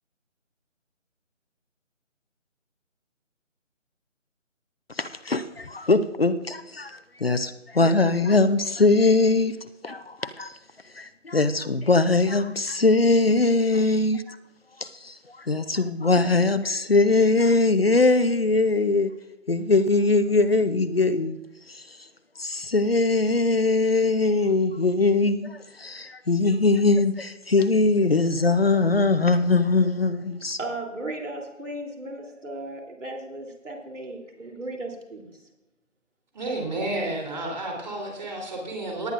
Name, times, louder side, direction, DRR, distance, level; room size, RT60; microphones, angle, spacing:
voice 1, 5.0-9.6 9.8-10.5 11.0-14.4 14.8-19.1 19.5-21.4 21.7-21.8 22.4-30.6, left 3 dB, 50° left, 0.7 m, -21 dB
voice 2, 30.6-35.4, right 2 dB, 70° right, 3.3 m, -36 dB
voice 3, 36.3-39.1, right 2 dB, 35° right, 3.5 m, -31 dB
18.5 x 10.5 x 2.5 m
figure-of-eight pair, 170°, 38 cm